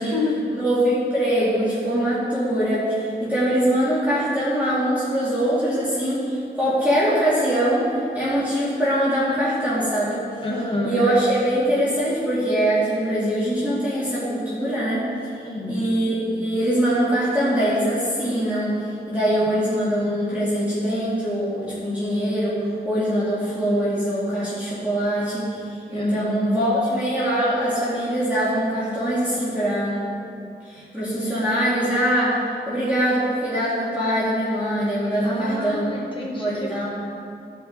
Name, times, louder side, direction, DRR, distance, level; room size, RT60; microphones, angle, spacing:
voice 1, 0.0-0.4 10.4-11.1 15.4-15.9 25.9-26.6 35.2-36.9, left 2 dB, 30° left, -4 dB, 1.4 m, -28 dB
voice 2, 0.5-10.2 10.8-15.0 15.4-30.1 30.6-35.9 36.4-36.9, equal, 10° right, -11 dB, 2.4 m, -23 dB
16.0 x 5.5 x 3.9 m, 2.6 s
wide cardioid pair, 105°, 18 cm